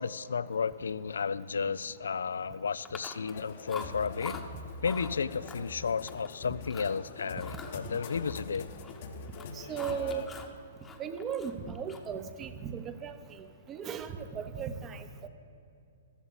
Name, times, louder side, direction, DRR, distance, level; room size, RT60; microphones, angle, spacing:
voice 1, 0.0-4.4 4.8-8.7, left 6 dB, 75° left, 18 dB, 0.4 m, -33 dB
Chewing mastication, 2.9-3.4 3.7-4.4 4.8-5.1 5.5-6.3 6.6-7.0 7.4-9.0 9.3-10.5 10.8-12.2, left 5 dB, 15° left, 1.0 m, -45 dB
sound 1, 3.3-10.2, left 4 dB, 55° left, 1.0 m, -44 dB
voice 2, 9.5-10.2 11.0-15.3, right 7 dB, 25° right, 10 dB, 0.8 m, -37 dB
14.0 x 13.0 x 4.0 m, 2.6 s
hypercardioid pair, 125°, 0 cm